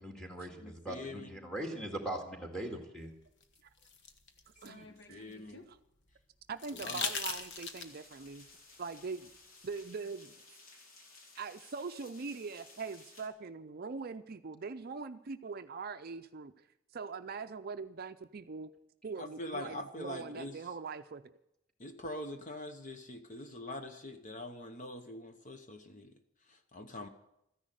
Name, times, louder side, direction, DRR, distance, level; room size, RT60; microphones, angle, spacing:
voice 1, 0.0-3.1, right 1 dB, 5° left, 2 dB, 2.1 m, -40 dB
voice 2, 0.6-1.4 4.8-5.6 6.8-7.0 19.2-20.5 21.8-26.1 26.5-27.1, left 1 dB, 40° left, 7 dB, 1.0 m, -44 dB
sound 1, 3.4-5.7 6.6-8.1 9.8-9.9, left 5 dB, 55° left, 1.2 m, -40 dB
voice 3, 4.6-5.3 5.7-5.8 6.5-8.4 8.8-9.3 9.6-10.3 11.4-16.5 16.9-18.7 19.0-21.2, right 4 dB, 45° right, 10 dB, 0.5 m, -42 dB
sound 2, 7.5-13.3, left 3 dB, 90° left, 2.7 m, -57 dB
14.0 x 10.5 x 7.7 m, 0.81 s
head